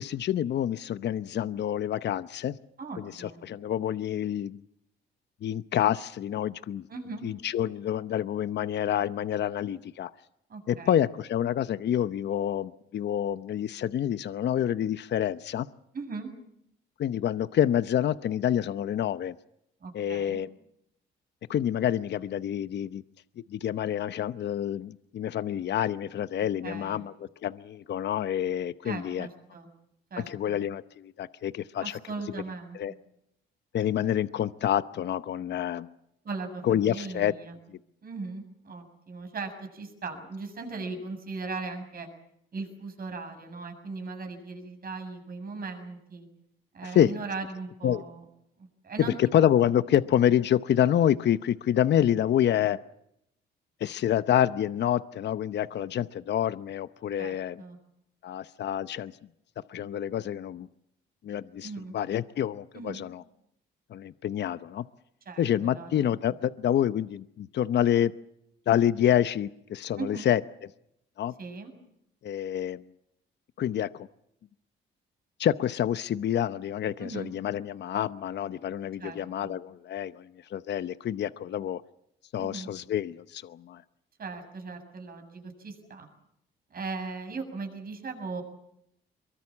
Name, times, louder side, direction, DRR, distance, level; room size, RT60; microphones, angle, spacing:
voice 1, 0.0-2.6 3.0-4.6 5.4-6.9 7.2-10.1 10.7-15.7 17.0-19.3 19.9-20.5 21.5-23.0 23.5-27.1 27.4-29.3 30.3-32.0 32.7-32.9 33.7-35.9 36.6-37.3 37.7-37.8 46.8-47.1 47.8-48.0 49.2-52.8 53.8-57.6 58.2-59.1 59.7-60.7 61.2-63.2 63.9-64.8 65.4-68.1 68.7-70.4 71.2-71.3 72.2-72.8 73.6-74.1 75.4-81.8 82.3-83.8, left 10 dB, 60° left, 14 dB, 0.8 m, -27 dB
voice 2, 2.8-3.4 6.9-7.2 10.5-10.9 15.9-16.3 19.8-20.4 26.6-27.0 28.8-29.7 30.1-30.6 31.8-32.8 36.2-37.6 38.0-42.1 42.5-46.3 46.7-48.2 48.6-49.2 57.2-57.8 61.6-61.9 62.7-63.0 65.3-66.0 66.3-66.4 70.0-70.3 71.4-71.7 77.0-77.3 79.0-79.6 82.4-82.7 84.2-86.1 86.7-88.4, right 4 dB, 50° right, 6 dB, 7.3 m, -38 dB
23.5 x 23.0 x 7.3 m, 0.77 s
cardioid pair, 90°, 20 cm